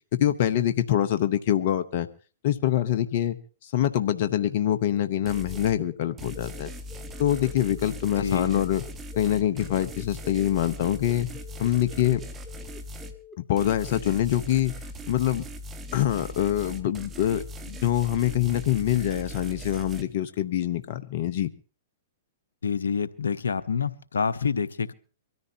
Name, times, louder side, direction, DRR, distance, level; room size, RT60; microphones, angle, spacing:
voice 1, 0.1-2.1 2.4-3.4 3.6-6.7 7.2-8.8 9.2-11.3 11.6-12.2 13.5-14.7 15.1-15.5 15.9-21.5, left 11 dB, 55° left, 11 dB, 0.9 m, -25 dB
sound 1, 4.1-13.9, left 5 dB, ahead, 2.4 m, -48 dB
sound 2, 5.3-5.8 6.2-13.2 13.6-20.0, equal, 20° right, 1.6 m, -39 dB
voice 2, 8.2-8.6 22.6-24.9, left 6 dB, 85° left, 15 dB, 0.9 m, -27 dB
24.0 x 14.0 x 2.9 m, 0.38 s
hypercardioid pair, 115°, 0 cm